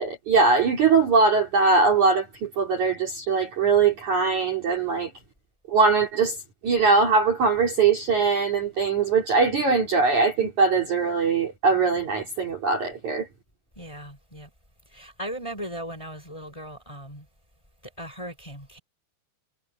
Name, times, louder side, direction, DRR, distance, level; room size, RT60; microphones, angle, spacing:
voice 1, 0.0-5.1 5.7-6.4 6.6-13.3, right 4 dB, 40° right, 4.1 m, -21 dB
voice 2, 13.8-14.5 14.9-17.3 17.8-18.8, right 1 dB, 5° left, 5.0 m, -38 dB
omnidirectional pair, 5.7 m